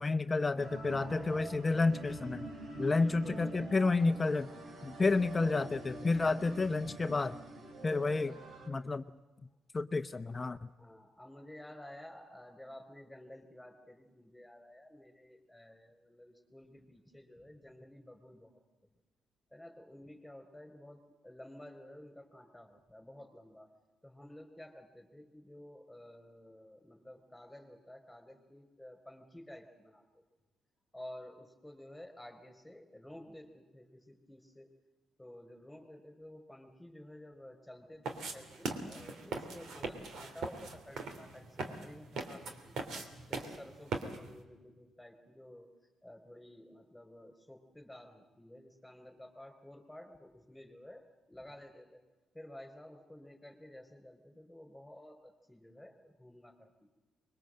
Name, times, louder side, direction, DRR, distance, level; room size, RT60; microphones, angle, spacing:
voice 1, 0.0-2.5 2.8-4.5 4.8-7.4 7.8-8.3 8.7-9.0 9.7-10.7, left 3 dB, 25° left, 10 dB, 0.8 m, -30 dB
sound 1, 0.6-8.7, right 2 dB, 55° right, 3.6 m, -45 dB
voice 2, 2.8-3.8 5.2-5.4 6.3-6.6 7.0-7.2 8.2-8.4 10.8-18.6 19.5-23.7 24.0-30.2 30.9-34.7 35.2-42.9 43.3-45.7 46.0-52.0 52.3-56.7, left 1 dB, 5° left, 7 dB, 5.0 m, -52 dB
sound 2, 38.1-44.4, right 4 dB, 70° right, 3.0 m, -41 dB
24.0 x 22.0 x 7.8 m, 1.1 s
cardioid pair, 90°, 0 cm